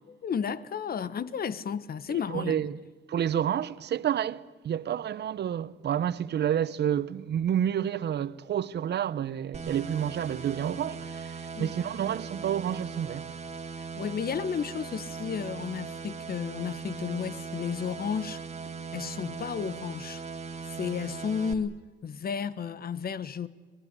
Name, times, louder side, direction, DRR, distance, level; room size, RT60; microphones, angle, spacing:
voice 1, 0.1-2.7 11.5-11.7 13.8-18.4 18.9-20.2 20.7-23.5, left 7 dB, 50° left, 1.3 m, -33 dB
voice 2, 2.1-2.8 3.1-13.4, right 9 dB, 60° right, 0.9 m, -29 dB
sound 1, 9.5-21.5, right 5 dB, 35° right, 2.1 m, -39 dB
25.0 x 20.5 x 9.7 m
cardioid pair, 90°, 20 cm